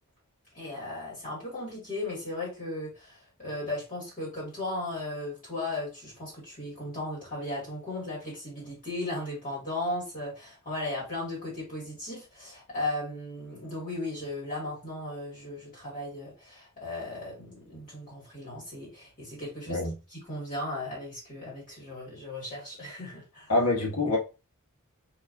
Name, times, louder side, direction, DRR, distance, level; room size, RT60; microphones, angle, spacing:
voice 1, 0.5-19.8 20.1-23.5, left 2 dB, 35° left, 2.2 m, -36 dB
voice 2, 23.5-24.2, left 2 dB, 80° left, 1.4 m, -25 dB
4.5 x 3.0 x 2.7 m
head